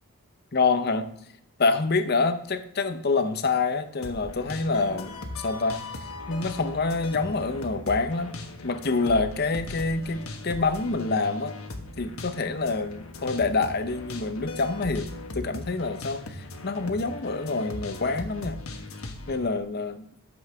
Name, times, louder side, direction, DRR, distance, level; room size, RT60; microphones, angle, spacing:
voice 1, 0.5-1.1 1.6-5.2 5.4-5.8 6.3-8.3 8.6-11.6 12.0-15.1 15.3-18.6 19.3-20.0, left 3 dB, 45° left, 10 dB, 0.7 m, -26 dB
sound 1, 4.0-19.4, left 2 dB, 70° left, 1.3 m, -39 dB
11.0 x 7.1 x 3.5 m, 0.75 s
head